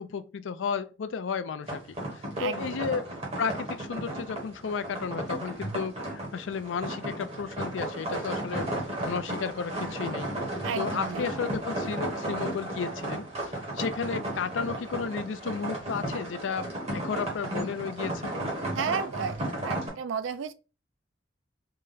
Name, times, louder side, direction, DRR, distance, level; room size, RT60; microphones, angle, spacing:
voice 1, 0.0-1.8 2.1-3.1 3.4-8.7 9.1-10.3 10.8-18.3, left 6 dB, 75° left, 0.4 m, -33 dB
sound 1, 1.6-19.9, right 1 dB, 35° right, 1.2 m, -34 dB
voice 2, 2.4-2.7 10.6-11.3 18.8-20.5, right 6 dB, 80° right, 0.4 m, -33 dB
3.8 x 2.1 x 3.8 m
head